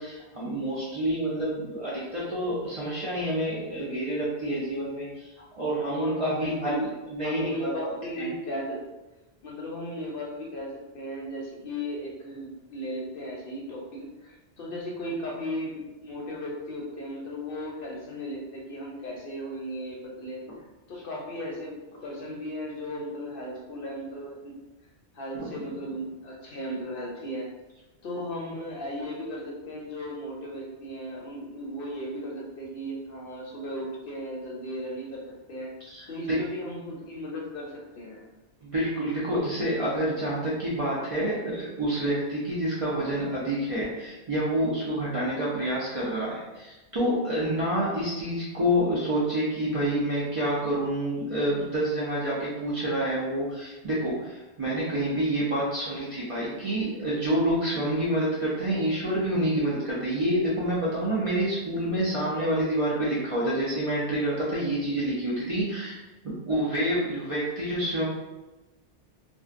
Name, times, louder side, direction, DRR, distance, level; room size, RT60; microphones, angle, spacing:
voice 1, 0.0-7.9 8.2-8.3 25.3-25.5 35.8-36.4 38.6-66.0 66.2-68.0, right 1 dB, 50° right, -8 dB, 0.4 m, -28 dB
voice 2, 5.9-6.9 7.2-8.8 9.4-20.4 20.9-21.8 22.0-24.5 25.1-27.5 28.0-35.7 36.1-38.3, equal, 60° left, -2 dB, 0.6 m, -36 dB
2.5 x 2.1 x 2.4 m, 1.1 s
omnidirectional pair, 1.2 m